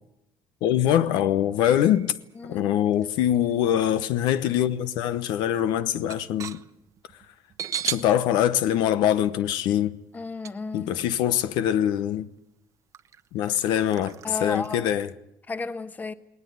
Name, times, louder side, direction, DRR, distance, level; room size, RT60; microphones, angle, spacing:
voice 1, 0.6-2.1 2.5-6.6 7.8-10.0 10.7-12.3 13.3-15.1, left 11 dB, 85° left, 1.0 m, -23 dB
sound 1, 1.6-2.3 2.9-4.6 4.9-5.0 5.4-8.1 8.5-8.6 10.4-10.5 11.4-11.5 12.0-12.1 12.9-15.1, right 8 dB, 45° right, 0.9 m, -37 dB
voice 2, 2.4-2.7 10.1-10.9 14.2-14.9 15.5-16.1, left 3 dB, 25° left, 1.2 m, -33 dB
19.5 x 19.0 x 9.5 m
cardioid pair, 115°, 7 cm